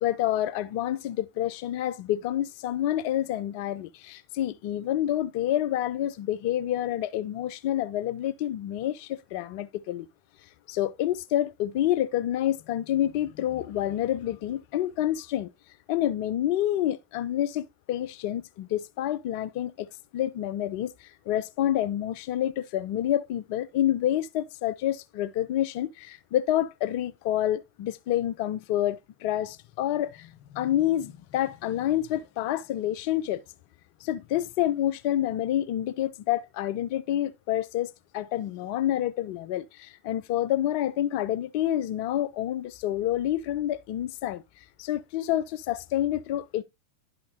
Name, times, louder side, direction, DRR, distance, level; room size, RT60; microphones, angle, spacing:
voice 1, 0.0-10.1 10.7-15.5 15.9-19.9 20.1-33.4 34.0-44.4 44.8-46.6, left 12 dB, 45° left, 0.6 m, -28 dB
11.5 x 5.1 x 2.8 m
figure-of-eight pair, 90°, 0 cm